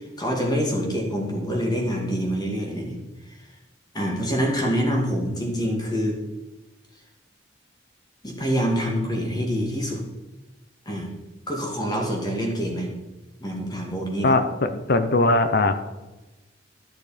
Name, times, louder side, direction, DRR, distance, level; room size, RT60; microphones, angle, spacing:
voice 1, 0.0-3.0 3.9-6.2 8.2-10.0 10.9-11.1 11.5-12.9 13.4-14.4, equal, 20° left, 0 dB, 2.3 m, -26 dB
voice 2, 14.2-15.8, left 2 dB, 55° left, 10 dB, 0.8 m, -20 dB
13.5 x 6.6 x 5.1 m, 1.1 s
head